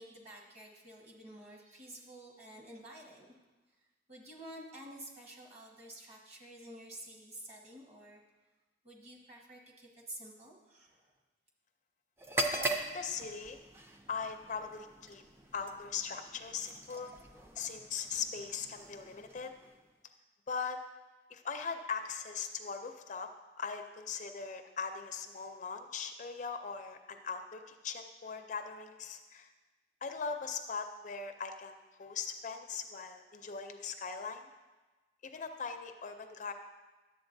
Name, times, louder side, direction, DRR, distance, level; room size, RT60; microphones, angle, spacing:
voice 1, 0.0-3.3 4.1-8.2 8.8-11.1, right 1 dB, 35° right, -1 dB, 1.4 m, -50 dB
sound 1, 12.2-20.0, right 2 dB, 15° right, 0.4 m, -41 dB
voice 2, 12.3-13.6 14.1-15.2 15.5-17.1 17.6-19.5 20.5-20.8 21.3-23.3 23.6-29.5 30.0-34.5 35.2-36.5, left 5 dB, 45° left, 6 dB, 0.4 m, -40 dB
11.0 x 7.5 x 2.6 m, 1.2 s
head